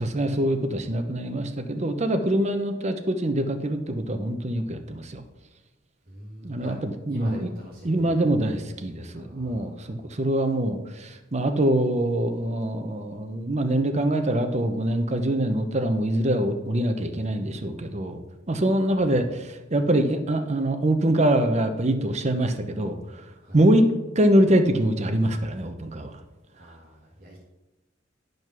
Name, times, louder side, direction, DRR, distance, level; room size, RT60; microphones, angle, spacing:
voice 1, 0.0-5.2 6.4-7.5 7.8-18.2 18.5-23.2 23.5-23.9 24.2-26.2, right 1 dB, 35° right, 7 dB, 0.8 m, -24 dB
voice 2, 6.1-6.8 7.1-8.2 9.1-10.1 18.9-19.3 23.4-23.6 26.5-27.4, equal, 50° right, -5 dB, 1.8 m, -44 dB
11.0 x 5.2 x 6.1 m, 1.0 s
head